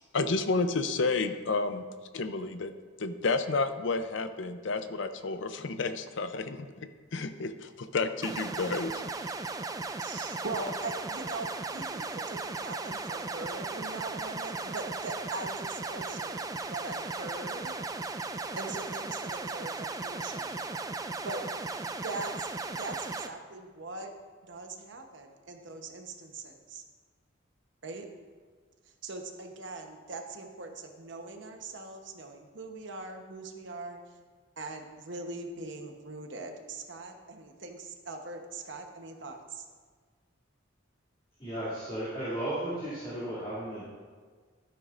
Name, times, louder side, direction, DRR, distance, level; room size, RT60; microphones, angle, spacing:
voice 1, 0.1-1.8 2.1-2.7 3.0-9.0, left 3 dB, 65° left, 9 dB, 0.6 m, -31 dB
sound 1, 8.2-23.3, right 3 dB, 15° right, 0.3 m, -36 dB
voice 2, 10.0-17.8 18.5-20.7 21.2-21.5 21.7-24.1 24.4-26.8 27.8-28.1 29.0-34.0 34.6-39.6, right 3 dB, 65° right, 4 dB, 1.0 m, -41 dB
voice 3, 41.4-43.8, right 1 dB, 30° left, -10 dB, 2.7 m, -34 dB
13.0 x 9.3 x 2.5 m, 1.5 s
head